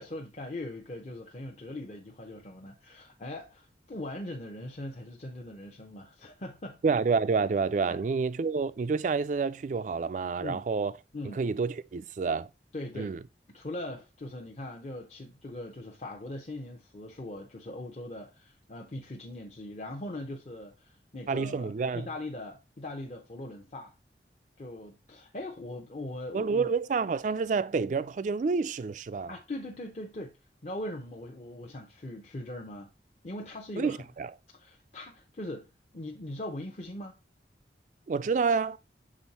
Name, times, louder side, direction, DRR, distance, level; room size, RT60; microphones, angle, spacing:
voice 1, 0.0-6.8 7.9-8.0 10.4-10.6 11.1-11.4 12.7-13.1 13.5-23.9 24.6-26.7 29.3-30.4 30.6-32.9 33.2-34.0 34.5-37.2, left 1 dB, 40° left, 0.7 m, -40 dB
voice 2, 6.8-10.9 11.3-12.5 13.0-13.2 21.3-22.1 26.3-29.4 33.8-34.3 38.1-38.8, right 5 dB, 45° right, 0.3 m, -28 dB
6.2 x 3.9 x 4.1 m
head